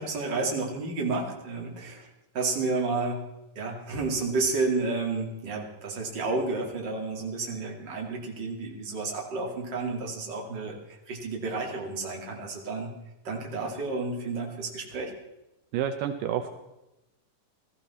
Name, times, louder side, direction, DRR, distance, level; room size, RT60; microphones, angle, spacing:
voice 1, 0.0-2.1 2.3-3.2 3.6-10.7 11.1-12.9 13.2-15.1, right 3 dB, 35° right, 0 dB, 2.6 m, -31 dB
voice 2, 15.7-16.5, right 9 dB, 80° right, 8 dB, 2.3 m, -29 dB
19.0 x 14.0 x 4.2 m, 0.96 s
omnidirectional pair, 3.9 m